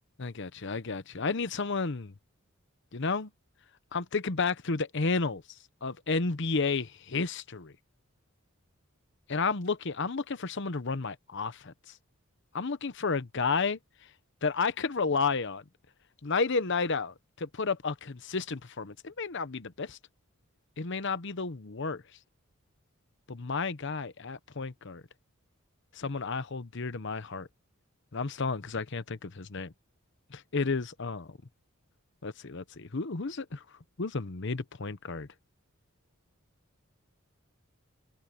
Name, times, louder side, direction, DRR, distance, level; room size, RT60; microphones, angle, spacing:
voice 1, 0.2-2.1 2.9-3.3 3.9-5.4 5.8-7.7 9.3-11.7 12.5-13.8 14.4-15.6 16.2-20.0 20.8-22.0 23.3-25.0 25.9-27.5 28.1-29.7 30.3-31.3 32.2-33.6 34.0-35.3, left 4 dB, 60° left, 0.9 m, -32 dB
head